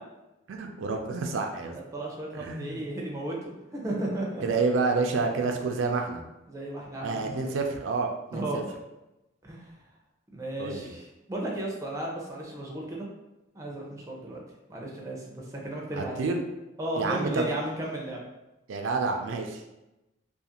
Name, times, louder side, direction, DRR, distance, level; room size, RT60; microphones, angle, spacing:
voice 1, 0.5-1.7 2.4-2.8 4.4-6.2 7.0-8.6 10.6-10.9 15.9-16.4 17.0-17.5 18.7-19.6, right 4 dB, 85° right, 3 dB, 0.4 m, -29 dB
voice 2, 1.7-4.4 6.5-7.4 8.3-8.7 9.4-9.8 10.3-13.1 13.5-14.4 14.7-16.3 16.8-18.2, right 1 dB, 15° right, -2 dB, 0.4 m, -34 dB
2.4 x 2.4 x 2.8 m, 0.96 s
head